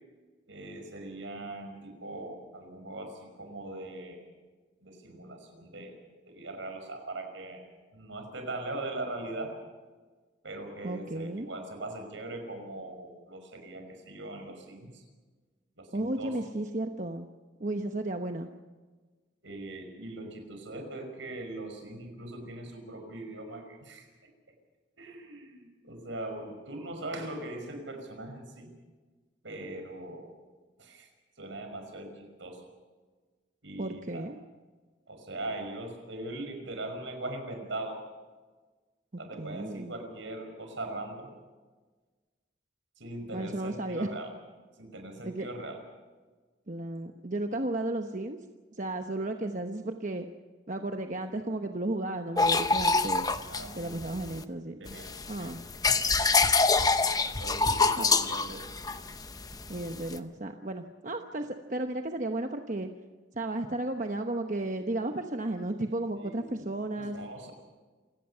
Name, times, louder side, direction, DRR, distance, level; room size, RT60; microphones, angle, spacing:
voice 1, 0.5-4.2 4.8-6.0 6.3-7.6 7.9-9.6 10.4-15.0 15.8-16.4 19.4-24.3 25.0-28.7 29.4-30.3 30.8-32.7 33.6-34.3 35.1-38.0 39.2-41.3 43.0-44.3 44.8-45.8 53.5-54.0 54.7-55.5 55.9-56.3 57.4-58.7 66.2-66.7 67.0-67.5, right 2 dB, 75° right, 5 dB, 5.7 m, -40 dB
voice 2, 10.8-11.5 15.9-17.3 17.6-18.5 33.8-34.3 39.4-39.9 43.3-44.1 45.2-45.5 46.7-48.4 48.7-50.3 50.7-53.3 53.8-54.7 55.3-55.6 58.0-58.1 59.7-62.9 63.3-67.2, right 2 dB, 40° right, 5 dB, 1.0 m, -33 dB
sound 1, 52.4-54.4 54.9-60.2, left 4 dB, 20° left, 0.8 m, -26 dB
27.5 x 18.0 x 5.7 m, 1.3 s
head